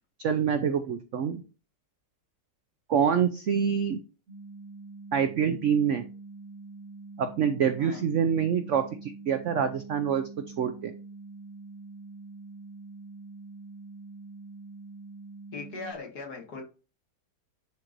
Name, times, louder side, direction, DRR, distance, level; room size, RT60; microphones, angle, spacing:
voice 1, 0.2-1.4 2.9-4.0 5.1-6.0 7.2-10.2 10.6-10.9, right 7 dB, 75° right, 9 dB, 0.6 m, -26 dB
sound 1, 4.3-15.9, right 3 dB, 40° right, 2.0 m, -45 dB
voice 2, 15.5-16.6, left 3 dB, 60° left, 1 dB, 2.2 m, -39 dB
10.5 x 4.5 x 2.6 m, 0.34 s
omnidirectional pair, 2.0 m